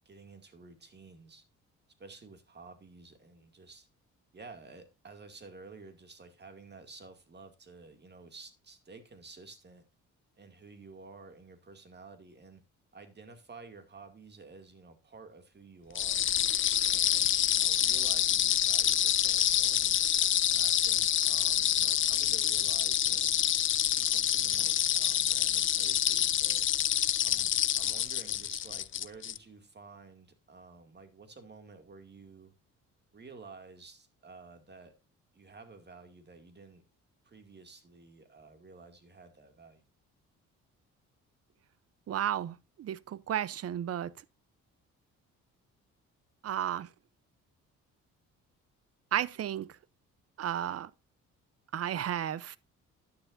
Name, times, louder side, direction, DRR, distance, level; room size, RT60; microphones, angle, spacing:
voice 1, 0.1-1.4 2.0-3.9 4.3-9.9 10.4-12.6 12.9-16.3 16.8-20.0 20.5-23.4 23.9-26.7 27.2-32.5 33.1-35.0 35.3-36.8 37.2-39.8, right 4 dB, 35° right, 2.3 m, -52 dB
sound 1, 16.0-29.4, left 10 dB, 40° left, 0.5 m, -27 dB
voice 2, 42.1-44.1 46.4-46.9 49.1-49.7 50.4-50.9 51.7-52.6, right 10 dB, 55° right, 0.6 m, -33 dB
12.0 x 9.6 x 2.6 m
cardioid pair, 90°, 30 cm